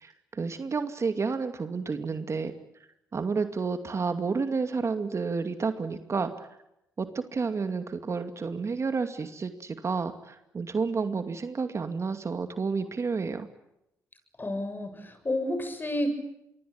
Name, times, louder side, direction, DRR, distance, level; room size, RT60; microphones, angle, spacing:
voice 1, 0.0-2.5 3.1-6.5 7.0-13.5, right 4 dB, 45° right, 8 dB, 2.4 m, -30 dB
voice 2, 14.4-16.1, left 1 dB, 30° left, 9 dB, 7.5 m, -30 dB
26.0 x 23.5 x 8.8 m, 0.85 s
supercardioid pair, 55°, 7 cm